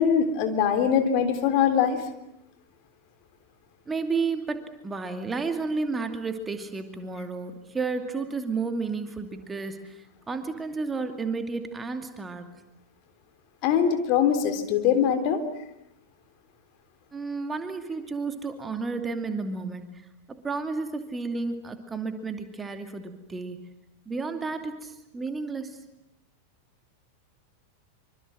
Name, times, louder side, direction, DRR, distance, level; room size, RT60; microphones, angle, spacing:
voice 1, 0.0-2.0 13.6-15.4, left 8 dB, 45° left, 8 dB, 3.5 m, -22 dB
voice 2, 3.9-12.5 17.1-23.6 24.1-25.8, right 4 dB, 15° right, 7 dB, 2.6 m, -32 dB
26.0 x 25.5 x 7.7 m, 0.83 s
figure-of-eight pair, 90°, 0 cm